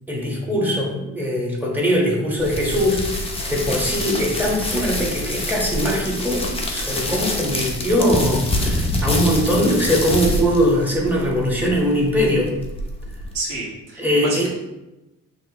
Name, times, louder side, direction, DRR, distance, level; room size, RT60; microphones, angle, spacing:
voice 1, 0.1-12.5 14.0-14.5, equal, 5° right, -3 dB, 1.4 m, -21 dB
sound 1, 2.4-13.4, left 1 dB, 20° left, 0.8 m, -26 dB
voice 2, 13.3-14.5, right 2 dB, 90° right, -6 dB, 1.5 m, -29 dB
5.6 x 3.0 x 3.0 m, 0.98 s
cardioid pair, 90°, 30 cm